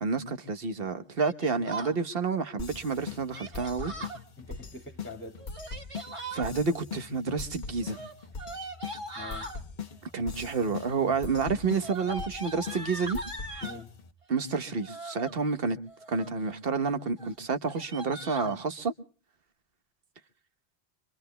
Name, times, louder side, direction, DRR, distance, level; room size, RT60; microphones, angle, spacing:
voice 1, 0.0-3.9 6.3-8.0 10.1-13.2 14.3-15.8 16.1-18.9, right 4 dB, 65° right, 1.3 m, -29 dB
Yell, 1.2-2.0 3.3-4.2 5.4-6.5 7.8-9.6 10.4-10.9 11.2-13.8 14.7-15.3 15.9-16.4 16.8-16.9 17.2-17.3 17.6-18.5, right 2 dB, 30° right, 1.8 m, -40 dB
sound 1, 2.6-14.1, left 5 dB, 50° left, 1.0 m, -42 dB
voice 2, 4.0-5.4 9.1-9.5 13.6-13.9, left 3 dB, 10° left, 2.0 m, -44 dB
25.5 x 24.0 x 2.2 m
omnidirectional pair, 1.1 m